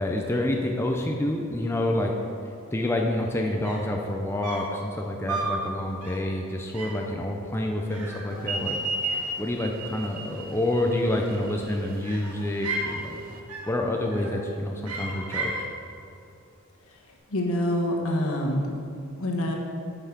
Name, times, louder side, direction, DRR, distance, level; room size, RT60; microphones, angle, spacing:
voice 1, 0.0-2.1 2.7-8.8 9.4-13.1 13.7-15.5, left 1 dB, 10° left, 1 dB, 0.5 m, -28 dB
sound 1, 3.6-4.0 4.4-4.8 5.3-5.6 6.0-6.3 6.7-7.1 7.9-8.8 9.0-9.7 10.9-11.6 12.0-13.0 13.5-13.8 14.1-14.5 14.8-15.7, right 2 dB, 85° right, 1.4 m, -35 dB
sound 2, 8.4-13.4, right 3 dB, 40° right, 0.7 m, -34 dB
voice 2, 17.3-18.7 19.2-19.5, left 1 dB, 75° left, 0 dB, 1.3 m, -26 dB
8.0 x 5.7 x 5.9 m, 2.7 s
head